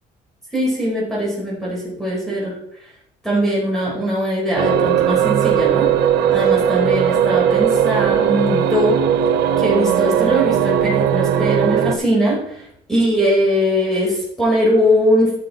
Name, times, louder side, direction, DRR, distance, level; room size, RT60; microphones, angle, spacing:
voice 1, 0.5-2.5 3.2-5.9 6.3-9.0 9.6-15.4, equal, ahead, -5 dB, 5.0 m, -20 dB
sound 1, 4.6-11.9, right 9 dB, 80° right, 1.0 m, -17 dB
11.5 x 7.0 x 4.3 m, 0.73 s
cardioid pair, 110°, 17 cm